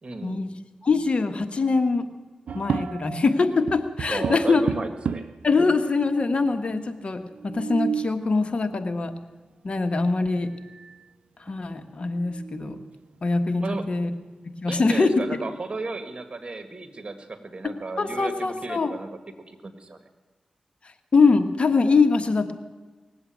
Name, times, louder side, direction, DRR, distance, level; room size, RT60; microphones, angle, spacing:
voice 1, 0.0-0.4 4.1-5.3 13.6-13.9 14.7-19.2 19.5-20.0, right 3 dB, 45° right, 8 dB, 1.9 m, -34 dB
voice 2, 0.8-2.0 2.5-4.6 5.4-9.1 9.6-10.5 11.5-12.8 13.2-14.1 14.6-15.1 18.0-18.9 21.1-22.5, left 4 dB, 55° left, 8 dB, 1.3 m, -23 dB
sound 1, 2.5-3.3 3.7-5.5 6.2-6.3 6.5-6.6 7.3-8.2 9.9-10.1 10.6-11.0 11.5-11.6 12.1-13.0, right 6 dB, 80° right, 0.4 m, -32 dB
19.5 x 7.9 x 9.1 m, 1.3 s
cardioid pair, 55°, 2 cm